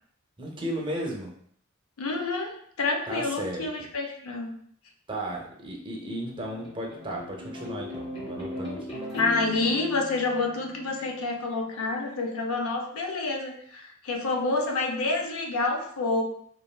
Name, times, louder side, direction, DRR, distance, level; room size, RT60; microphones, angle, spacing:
voice 1, 0.4-1.3 3.1-3.7 5.1-9.0, right 1 dB, 25° right, 0 dB, 0.5 m, -34 dB
voice 2, 2.0-4.5 9.1-16.2, left 3 dB, 75° left, 3 dB, 0.5 m, -28 dB
sound 1, 5.7-11.3, left 1 dB, 25° left, 0.9 m, -39 dB
3.2 x 2.4 x 2.2 m, 0.64 s
head